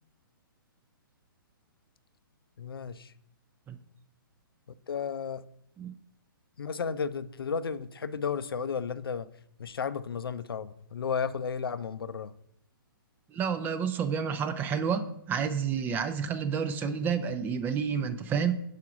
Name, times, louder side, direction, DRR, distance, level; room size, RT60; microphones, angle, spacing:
voice 1, 2.6-3.1 4.9-5.4 6.6-9.3 9.6-12.3, left 6 dB, 80° left, 0.4 m, -33 dB
voice 2, 13.3-18.5, right 7 dB, 15° right, 0.4 m, -30 dB
4.9 x 4.6 x 5.9 m
hypercardioid pair, 130°, 12 cm